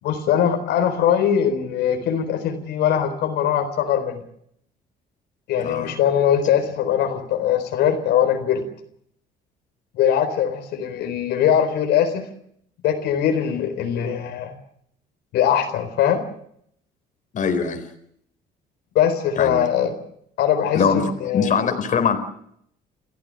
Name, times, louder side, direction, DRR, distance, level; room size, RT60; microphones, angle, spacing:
voice 1, 0.0-4.2 5.5-8.6 9.9-12.2 12.8-14.5 15.3-16.2 18.9-19.9 20.4-21.7, left 9 dB, 80° left, 5 dB, 4.2 m, -21 dB
voice 2, 5.6-5.9 17.3-17.8 19.4-19.6 20.7-21.0 21.3-22.2, left 6 dB, 50° left, 6 dB, 4.3 m, -21 dB
30.0 x 15.0 x 7.7 m, 0.69 s
cardioid pair, 110°, 17 cm